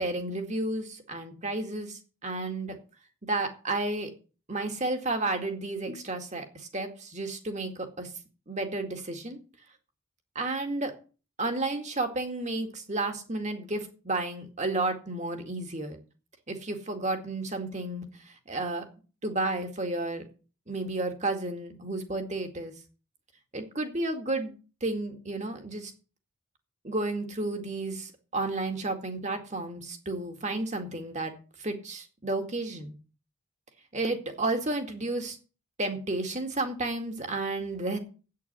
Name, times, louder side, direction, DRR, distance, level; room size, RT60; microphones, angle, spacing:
voice 1, 0.0-2.8 3.2-4.1 4.5-8.1 8.5-9.4 10.4-10.9 11.4-16.0 16.5-18.9 19.2-20.3 20.7-22.7 23.5-24.5 24.8-25.9 26.8-31.3 31.6-32.9 33.9-35.4 35.8-38.0, right 2 dB, 35° right, 5 dB, 2.1 m, -32 dB
8.8 x 8.6 x 8.3 m, 0.36 s
head